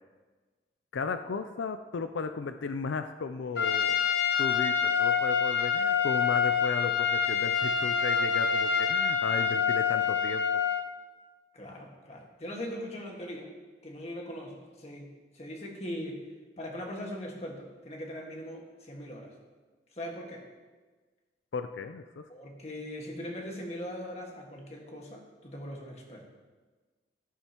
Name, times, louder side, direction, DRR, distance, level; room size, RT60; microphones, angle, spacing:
voice 1, 0.9-4.0 4.4-10.4 21.5-22.2, left 5 dB, 85° left, 9 dB, 0.4 m, -35 dB
Trumpet, 3.6-10.9, left 6 dB, 65° left, 0.9 m, -26 dB
voice 2, 11.5-13.5 13.8-15.1 15.3-16.2 16.6-19.3 19.9-20.4 22.3-26.3, equal, 35° left, 0 dB, 1.7 m, -40 dB
13.5 x 12.5 x 3.0 m, 1.4 s
head